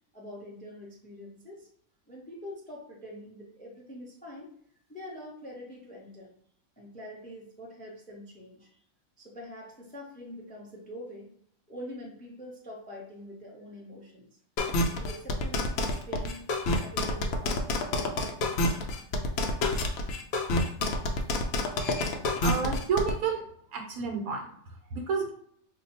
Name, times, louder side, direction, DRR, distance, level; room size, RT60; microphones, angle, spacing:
voice 1, 0.1-1.7 2.1-4.5 4.9-6.3 6.8-8.8 9.2-11.3 11.7-14.3 14.9-16.5 16.8-18.1, equal, 10° left, -2 dB, 0.4 m, -45 dB
sound 1, 14.6-23.1, left 2 dB, 65° left, 0.7 m, -28 dB
voice 2, 22.4-23.4 23.7-25.3, right 5 dB, 85° right, 2 dB, 1.2 m, -30 dB
2.7 x 2.2 x 4.1 m, 0.64 s
omnidirectional pair, 1.5 m